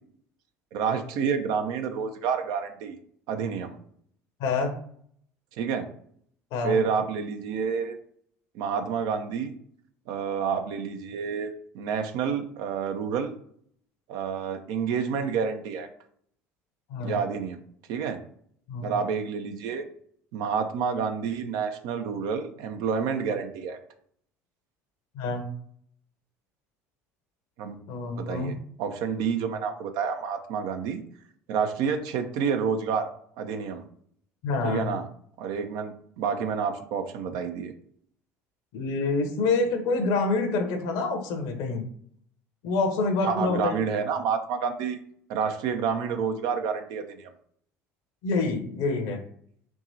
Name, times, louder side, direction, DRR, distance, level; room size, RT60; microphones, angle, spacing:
voice 1, 0.7-3.0 3.3-3.8 5.6-5.8 6.6-8.0 8.5-9.5 10.1-13.3 14.1-15.9 17.0-17.6 17.9-18.2 18.8-19.8 20.3-23.8 27.6-27.8 28.2-31.0 31.5-33.1 33.4-33.8 34.6-35.0 35.4-37.7 43.2-45.0 45.3-47.3, right 6 dB, 60° right, 7 dB, 0.6 m, -29 dB
voice 2, 4.4-4.7 6.5-6.8 16.9-17.2 18.7-18.9 25.1-25.4 27.9-28.5 34.4-34.9 38.7-41.8 42.6-43.7 48.2-49.2, left 3 dB, 60° left, 5 dB, 0.9 m, -27 dB
4.6 x 2.9 x 2.7 m, 0.64 s
figure-of-eight pair, 60°, 8 cm